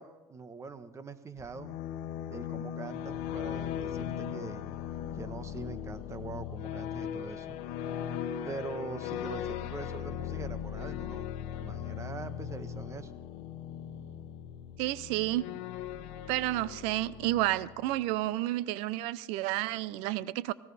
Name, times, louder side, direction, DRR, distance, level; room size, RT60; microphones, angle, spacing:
voice 1, 0.0-1.8 2.3-4.6 5.1-7.6 8.4-13.1, right 4 dB, 30° right, 12 dB, 1.2 m, -43 dB
sound 1, 1.4-18.0, left 9 dB, 80° left, 1.0 m, -38 dB
voice 2, 14.8-15.5 16.3-20.5, right 16 dB, 80° right, 19 dB, 0.5 m, -31 dB
18.5 x 17.5 x 4.1 m, 1.1 s
supercardioid pair, 90°, 10 cm